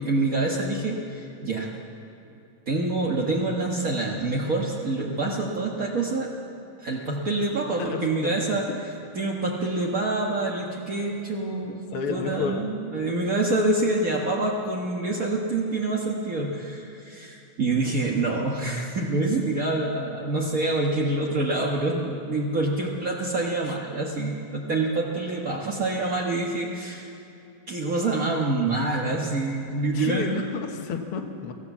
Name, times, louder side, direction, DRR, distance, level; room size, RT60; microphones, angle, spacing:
voice 1, 0.0-1.7 2.7-6.3 6.8-8.6 9.1-11.8 12.1-27.1 27.7-30.5, right 2 dB, 50° right, -2 dB, 1.0 m, -26 dB
voice 2, 7.8-8.8 11.9-12.6 23.6-23.7 28.8-29.0 29.9-31.5, left 6 dB, 60° left, 2 dB, 1.6 m, -31 dB
24.5 x 15.5 x 7.3 m, 2.8 s
omnidirectional pair, 3.8 m